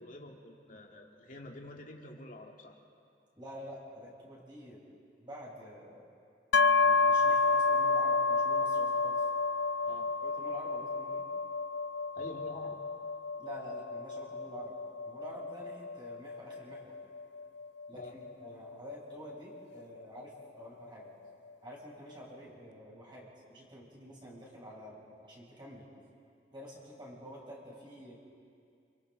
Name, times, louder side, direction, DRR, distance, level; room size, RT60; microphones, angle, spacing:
voice 1, 0.0-2.8 9.8-10.1 12.1-12.8 17.9-18.2, left 1 dB, 50° left, 0 dB, 2.5 m, -47 dB
voice 2, 3.4-4.8 5.2-6.0 6.8-9.3 10.2-11.2 13.4-14.7 15.1-16.9 17.9-21.1 21.6-25.9 26.5-28.2, equal, 30° right, -5 dB, 7.4 m, -48 dB
sound 1, 6.5-20.2, left 4 dB, 85° left, 0.5 m, -30 dB
29.5 x 29.5 x 4.1 m, 2.3 s
head